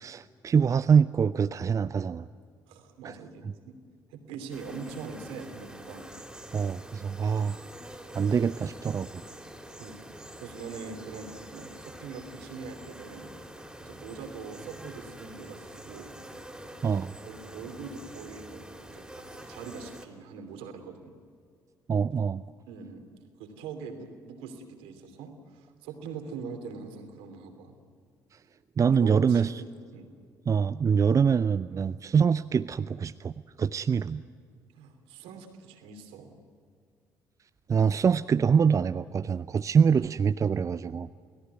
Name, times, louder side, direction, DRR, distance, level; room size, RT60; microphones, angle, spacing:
voice 1, 0.0-2.3 3.0-3.1 6.5-7.6 8.1-9.2 16.8-17.1 21.9-22.4 28.8-29.5 30.5-33.3 33.6-34.2 37.7-41.1, right 6 dB, 30° right, 14 dB, 0.5 m, -24 dB
voice 2, 2.7-3.8 4.1-6.0 9.8-10.0 10.4-13.3 13.8-16.1 17.2-21.1 22.7-23.0 23.4-27.8 28.9-30.1 34.7-36.4, right 5 dB, 65° right, 6 dB, 2.9 m, -42 dB
sound 1, 4.5-20.0, right 1 dB, 5° right, 3.5 m, -46 dB
29.0 x 17.5 x 9.5 m, 2.2 s
figure-of-eight pair, 45°, 10 cm